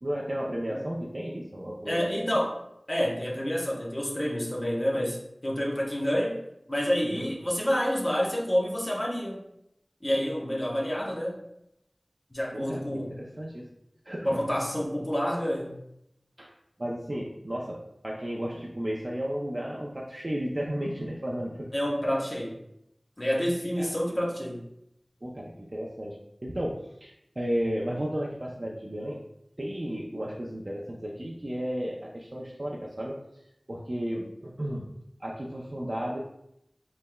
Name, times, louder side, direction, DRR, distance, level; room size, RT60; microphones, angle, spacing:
voice 1, 0.0-2.1 7.0-7.3 12.5-13.7 14.0-14.5 16.4-16.5 16.8-21.7 23.8-23.9 25.2-26.2 26.4-29.2 29.6-33.2 33.7-34.9 35.2-36.2, equal, 50° right, -3 dB, 0.5 m, -33 dB
voice 2, 1.9-2.6 2.9-6.4 6.7-9.4 10.0-11.4 12.3-13.1 14.2-15.8 21.7-22.6 23.2-24.6, equal, 35° left, -3 dB, 0.9 m, -28 dB
5.3 x 3.2 x 2.2 m, 0.80 s
wide cardioid pair, 50°, 0 cm